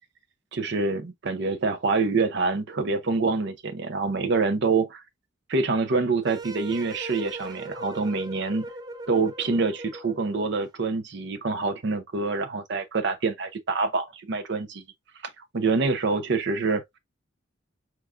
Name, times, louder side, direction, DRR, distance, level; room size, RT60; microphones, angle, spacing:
voice 1, 0.5-5.0 5.5-8.6 9.1-14.8 15.5-16.8, right 4 dB, 60° right, 0.6 m, -26 dB
sound 1, 6.2-10.6, right 1 dB, 20° right, 0.5 m, -39 dB
4.6 x 3.6 x 2.4 m
head